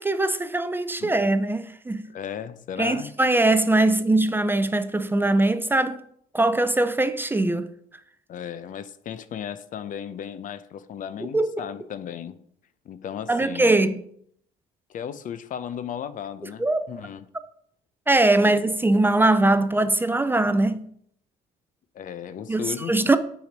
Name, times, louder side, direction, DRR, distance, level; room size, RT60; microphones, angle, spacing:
voice 1, 0.0-2.1 2.8-6.0 6.3-7.7 11.3-11.5 13.3-14.0 16.6-16.9 18.1-20.8 22.5-23.2, right 2 dB, 10° right, 0.5 m, -21 dB
voice 2, 1.0-1.3 2.1-3.1 8.3-12.4 12.8-13.7 14.9-17.3 18.4-18.6 21.9-23.2, left 9 dB, 50° left, 0.6 m, -35 dB
7.9 x 5.0 x 5.2 m
cardioid pair, 110°, 17 cm